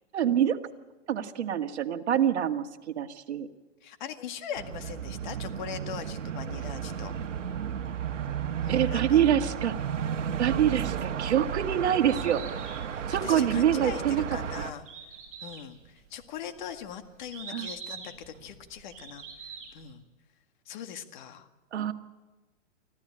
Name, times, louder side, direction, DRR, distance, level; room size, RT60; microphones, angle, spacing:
voice 1, 0.1-0.6 1.1-2.7 3.0-3.5 8.7-9.8 10.4-12.8 13.1-14.2 14.6-14.7 17.5-17.7 21.7-21.9, right 9 dB, 65° right, 6 dB, 1.9 m, -26 dB
voice 2, 3.8-7.1 8.6-9.2 12.9-14.8 15.4-20.0 20.7-21.5, left 8 dB, 40° left, 8 dB, 1.9 m, -41 dB
sound 1, 4.6-14.7, right 8 dB, 90° right, 1.3 m, -33 dB
Bird, 11.9-19.9, right 5 dB, 20° right, 6.7 m, -45 dB
25.0 x 15.0 x 8.7 m, 1.2 s
hypercardioid pair, 155°, 36 cm